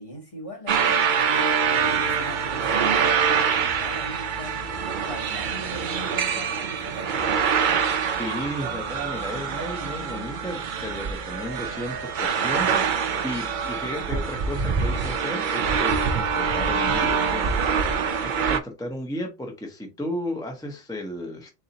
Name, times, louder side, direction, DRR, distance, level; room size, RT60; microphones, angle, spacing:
voice 1, 0.0-1.6 1.8-4.6 5.0-7.4, equal, 25° left, 1.4 m, -40 dB
sound 1, 0.7-18.6, right 6 dB, 55° right, 0.5 m, -25 dB
sound 2, 1.7-16.2, equal, 45° left, 0.9 m, -46 dB
voice 2, 8.2-17.9 18.2-21.6, left 1 dB, 5° left, 0.5 m, -34 dB
4.0 x 2.8 x 3.9 m
omnidirectional pair, 1.3 m